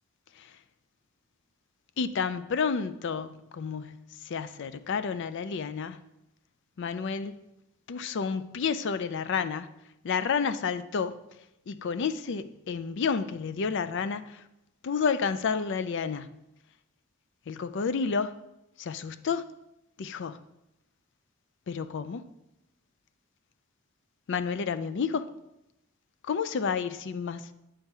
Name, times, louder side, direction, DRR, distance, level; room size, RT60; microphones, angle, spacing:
voice 1, 2.0-6.0 6.8-7.4 7.9-9.7 10.0-11.2 11.7-14.4 14.8-16.3 17.5-18.3 18.8-19.4 20.0-20.4 21.7-22.2 24.3-25.3 26.2-27.5, left 5 dB, 55° left, 0.4 m, -30 dB
8.8 x 3.5 x 5.5 m
head